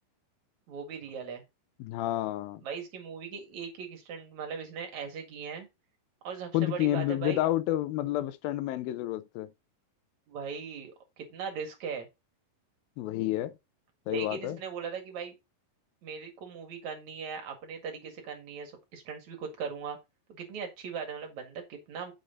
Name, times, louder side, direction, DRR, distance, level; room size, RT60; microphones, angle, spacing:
voice 1, 0.7-1.4 2.6-5.7 6.2-7.4 10.3-12.1 14.1-15.4 16.0-20.0 20.3-22.1, right 6 dB, 55° right, 2.9 m, -39 dB
voice 2, 1.8-2.6 6.5-9.5 13.0-13.5 14.1-14.6, left 15 dB, 80° left, 2.4 m, -30 dB
7.5 x 6.6 x 3.8 m
omnidirectional pair, 4.3 m